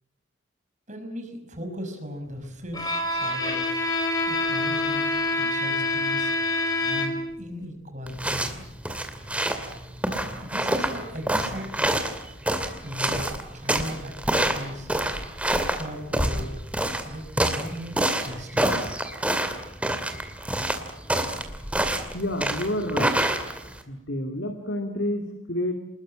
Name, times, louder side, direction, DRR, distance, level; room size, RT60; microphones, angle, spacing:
voice 1, 0.9-3.8 4.3-5.1 5.4-6.3 6.8-8.6 10.4-11.9 12.8-14.9 15.8-16.5 17.0-18.9, equal, 40° right, 5 dB, 5.6 m, -37 dB
Bowed string instrument, 2.7-7.4, left 2 dB, 20° left, 4.9 m, -26 dB
sound 1, 8.1-23.8, right 1 dB, 5° right, 2.4 m, -27 dB
voice 2, 22.1-23.2 23.9-25.7, left 1 dB, 65° left, 5 dB, 2.7 m, -29 dB
27.5 x 20.5 x 8.8 m, 0.79 s
head